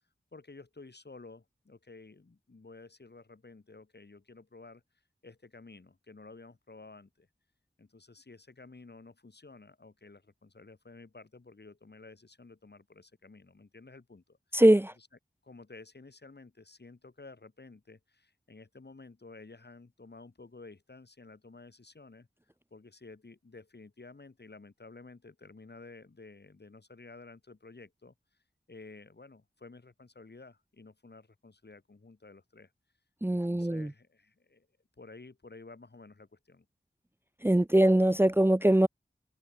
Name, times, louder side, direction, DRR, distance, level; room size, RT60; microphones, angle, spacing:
voice 1, 0.3-4.8 5.2-7.3 7.8-14.6 15.0-15.1 15.4-22.3 22.7-28.1 28.7-32.7 33.3-34.7 35.0-36.7, left 3 dB, 70° left, 7.9 m, -52 dB
voice 2, 14.5-14.9 33.2-33.9 37.4-38.9, right 1 dB, 15° right, 0.6 m, -22 dB
open air
wide cardioid pair, 65°, 18 cm